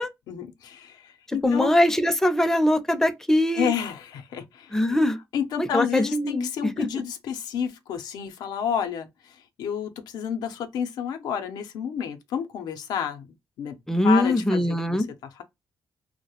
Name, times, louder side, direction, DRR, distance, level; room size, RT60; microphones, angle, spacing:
voice 1, 0.3-1.7 3.6-4.8 5.3-13.3 13.6-13.7 14.0-15.1 15.4-15.5, left 8 dB, 90° left, 0.4 m, -30 dB
voice 2, 1.3-3.7 4.7-5.2 5.6-6.9 13.9-15.1, left 1 dB, 5° left, 0.4 m, -22 dB
2.2 x 2.0 x 2.8 m
cardioid pair, 80°, 7 cm